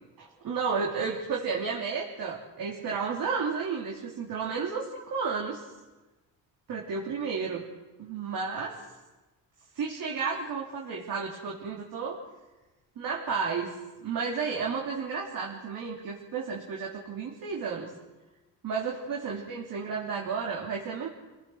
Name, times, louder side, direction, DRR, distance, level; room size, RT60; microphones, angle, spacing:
voice 1, 0.2-5.6 6.7-7.7 8.0-8.8 9.7-12.2 13.0-17.9 18.6-21.1, right 5 dB, 65° right, -2 dB, 3.3 m, -32 dB
27.5 x 18.0 x 6.4 m, 1.1 s
cardioid pair, 105°, 37 cm